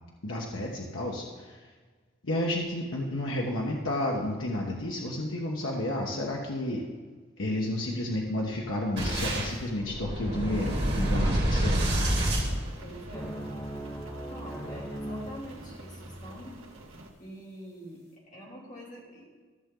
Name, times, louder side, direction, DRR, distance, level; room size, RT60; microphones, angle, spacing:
voice 1, 0.2-1.6 2.2-6.8 7.4-12.1, left 1 dB, 80° left, -2 dB, 1.2 m, -31 dB
Boom, 9.0-13.3, right 1 dB, 50° right, 2.7 m, -28 dB
Rain, 11.6-17.1, right 1 dB, 90° right, 1.7 m, -47 dB
voice 2, 12.8-13.4 14.3-16.6 17.2-19.4, equal, 40° left, -4 dB, 2.9 m, -45 dB
sound 1, 13.1-15.4, right 1 dB, 15° left, 1.4 m, -38 dB
14.5 x 6.8 x 3.8 m, 1.5 s
head